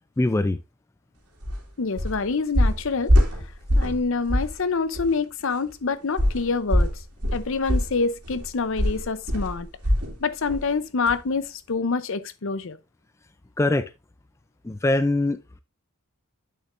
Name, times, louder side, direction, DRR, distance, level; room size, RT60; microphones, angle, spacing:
voice 1, 0.2-0.6 13.6-13.8 14.6-15.4, left 2 dB, 10° left, 0.3 m, -22 dB
sound 1, 1.4-1.6 2.0-2.2 2.6-4.0 4.3-4.6 4.9-5.1 6.2-10.2 10.5-10.7 11.1-11.2, equal, 90° right, 2.4 m, -22 dB
voice 2, 1.8-3.1 3.8-6.9 7.3-9.7 10.2-12.8, left 4 dB, 60° left, 0.6 m, -26 dB
8.7 x 6.6 x 2.5 m
head